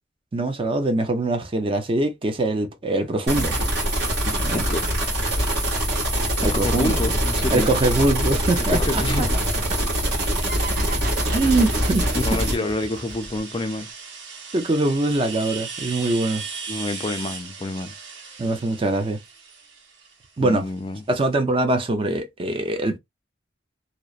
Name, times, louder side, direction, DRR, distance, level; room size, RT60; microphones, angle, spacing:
voice 1, 0.3-3.6 4.4-4.7 6.4-7.0 7.5-9.3 11.3-12.1 14.5-16.4 18.4-19.2 20.4-20.7 21.1-23.0, right 2 dB, 30° right, 0.5 m, -23 dB
sound 1, 3.3-12.5, right 1 dB, 65° right, 1.4 m, -23 dB
voice 2, 4.2-4.8 6.4-7.7 8.7-9.4 12.1-13.9 16.7-17.9 20.4-21.0, left 2 dB, 25° left, 0.4 m, -28 dB
sound 2, 10.5-13.8, right 4 dB, 50° right, 0.9 m, -37 dB
sound 3, 11.3-20.9, right 5 dB, 90° right, 0.9 m, -37 dB
2.8 x 2.0 x 2.3 m
head